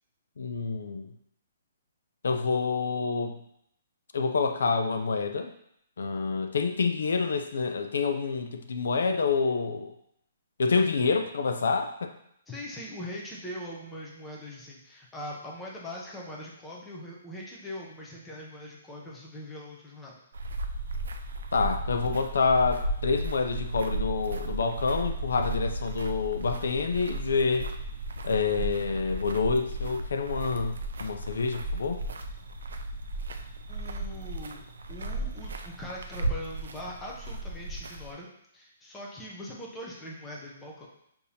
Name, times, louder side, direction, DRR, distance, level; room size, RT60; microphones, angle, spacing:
voice 1, 0.4-1.1 2.2-3.4 4.1-5.5 6.0-9.9 10.6-12.1 21.5-27.7 28.2-32.0, left 4 dB, 75° left, 6 dB, 0.5 m, -27 dB
voice 2, 12.5-20.2 33.7-40.9, left 1 dB, 5° left, -4 dB, 0.5 m, -41 dB
sound 1, 20.3-38.1, right 2 dB, 85° right, 0.5 m, -35 dB
6.6 x 2.7 x 2.7 m, 0.74 s
hypercardioid pair, 175°, 0 cm